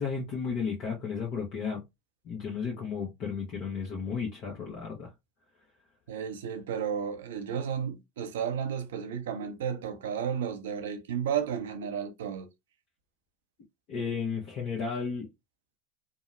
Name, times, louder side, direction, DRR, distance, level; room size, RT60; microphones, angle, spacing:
voice 1, 0.0-1.8 2.2-5.1 13.9-15.3, left 5 dB, 50° left, 0.8 m, -33 dB
voice 2, 6.1-12.5, right 8 dB, 70° right, 0.4 m, -33 dB
2.8 x 2.0 x 2.5 m
figure-of-eight pair, 75°, 0 cm